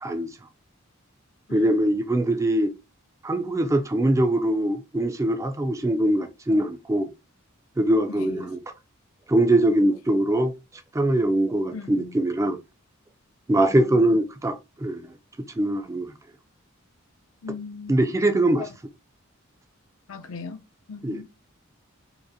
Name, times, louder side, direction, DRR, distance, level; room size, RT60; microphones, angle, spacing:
voice 1, 0.0-0.3 1.5-2.7 3.2-7.1 7.8-8.6 9.3-10.5 10.9-12.6 13.5-15.1 15.6-16.1 17.9-18.7 21.0-21.2, right 1 dB, 15° right, 0.3 m, -22 dB
voice 2, 8.1-8.5 11.7-12.2 13.5-14.2 17.4-18.0 18.6-18.7 20.1-20.6 20.9-21.2, left 5 dB, 80° left, 0.6 m, -39 dB
4.8 x 2.1 x 2.6 m
head